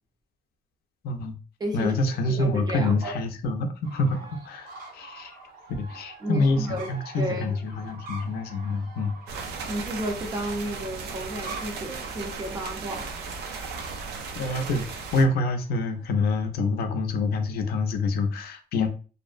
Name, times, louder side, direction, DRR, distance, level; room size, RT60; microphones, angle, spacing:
voice 1, 1.0-1.3 1.7-5.4 5.8-9.4 12.6-12.7 14.4-18.9, left 2 dB, 70° left, 0.5 m, -27 dB
voice 2, 1.6-1.9 2.2-3.1 6.2-6.9 7.2-7.6 9.7-13.8, right 1 dB, 25° right, 0.5 m, -32 dB
sound 1, 3.8-16.6, right 3 dB, 60° right, 0.8 m, -46 dB
sound 2, 9.3-15.2, right 4 dB, 80° right, 0.4 m, -36 dB
2.5 x 2.0 x 2.4 m
cardioid pair, 165°, 17 cm